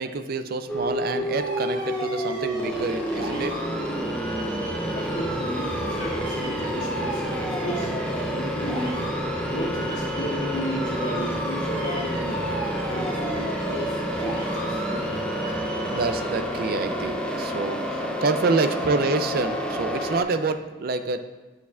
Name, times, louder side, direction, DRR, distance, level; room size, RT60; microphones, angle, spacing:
voice 1, 0.0-3.6 15.4-21.3, right 3 dB, 50° right, 9 dB, 0.4 m, -27 dB
sound 1, 0.7-20.2, equal, 5° left, 0.5 m, -29 dB
sound 2, 1.4-16.3, right 1 dB, 85° right, 2.4 m, -36 dB
voice 2, 4.9-7.9 8.3-8.9 9.5-12.5 12.9-13.9 14.2-15.2, equal, 75° left, -5 dB, 2.1 m, -33 dB
9.2 x 6.7 x 2.4 m, 1.2 s
head